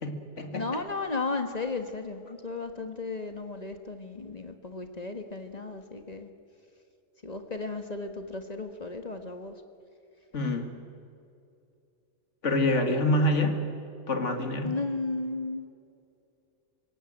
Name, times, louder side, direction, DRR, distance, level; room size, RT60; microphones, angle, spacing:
voice 1, 0.0-0.8 10.3-10.7 12.4-13.6 14.1-14.8, left 1 dB, 85° left, 6 dB, 2.4 m, -26 dB
voice 2, 0.5-6.3 7.2-9.5 14.6-15.6, left 3 dB, 35° left, 7 dB, 1.6 m, -34 dB
26.0 x 17.0 x 9.0 m, 2.5 s
omnidirectional pair, 1.2 m